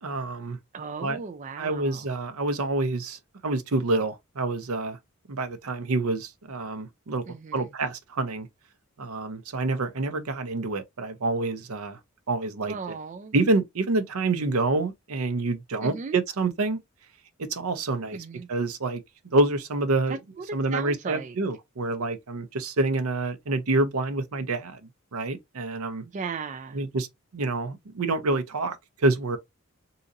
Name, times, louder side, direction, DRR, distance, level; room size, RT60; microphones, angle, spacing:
voice 1, 0.0-0.6 1.0-1.2 1.6-5.0 5.3-7.2 7.5-8.5 9.0-12.0 12.3-12.8 13.3-16.8 17.4-19.0 19.3-20.2 20.5-24.8 25.1-26.0 26.7-27.1 27.3-29.4, right 2 dB, 85° right, 0.7 m, -27 dB
voice 2, 0.7-2.1 7.3-7.7 12.7-13.3 15.8-16.2 18.1-18.5 20.1-21.4 26.1-26.8, right 5 dB, 35° right, 0.3 m, -36 dB
3.8 x 2.8 x 2.5 m
head